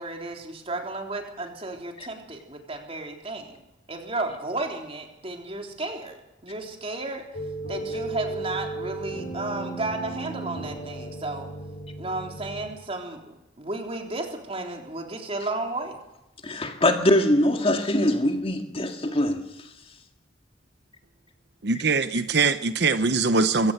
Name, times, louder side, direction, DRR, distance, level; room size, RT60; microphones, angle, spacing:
voice 1, 0.0-3.6 3.9-6.2 6.4-7.4 7.7-11.5 12.0-16.0, right 2 dB, 30° right, 3.6 m, -33 dB
sound 1, 7.3-12.7, right 2 dB, 50° left, 4.1 m, -35 dB
voice 2, 16.4-19.5, left 1 dB, 30° left, 2.0 m, -22 dB
voice 3, 21.6-23.7, right 4 dB, 60° right, 0.9 m, -22 dB
24.0 x 16.5 x 6.7 m
head